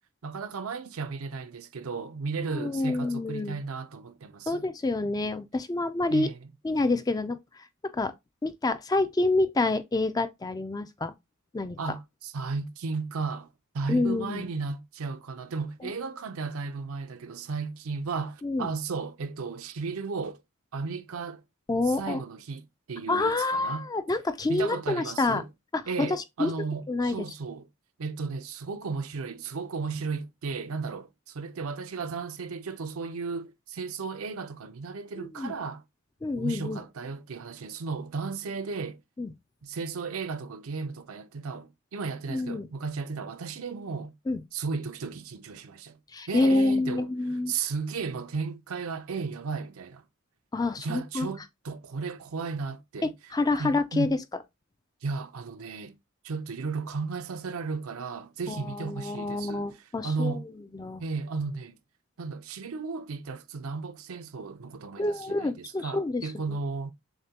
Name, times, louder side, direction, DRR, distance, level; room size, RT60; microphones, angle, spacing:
voice 1, 0.2-4.7 6.1-6.4 11.8-13.5 13.7-20.4 20.7-21.4 21.9-23.9 24.5-25.5 25.9-27.7 28.0-35.8 36.4-39.0 39.6-44.1 44.5-46.0 46.3-47.1 47.5-50.0 50.8-53.1 53.6-54.1 55.0-56.0 56.2-60.5 61.0-61.8 62.2-66.9, right 4 dB, 75° right, 0.6 m, -34 dB
voice 2, 2.5-3.6 4.5-6.3 6.6-7.6 7.9-8.1 8.4-11.1 11.5-11.8 13.9-14.4 15.8-15.9 18.4-18.7 21.7-22.2 23.1-25.4 25.7-26.5 26.9-27.1 35.2-35.5 36.2-36.8 39.2-39.3 42.3-42.7 44.3-44.4 46.1-47.5 50.5-51.3 53.3-54.1 58.5-60.4 60.7-61.0 65.0-66.6, left 2 dB, 15° left, 0.3 m, -28 dB
6.5 x 2.2 x 2.8 m
head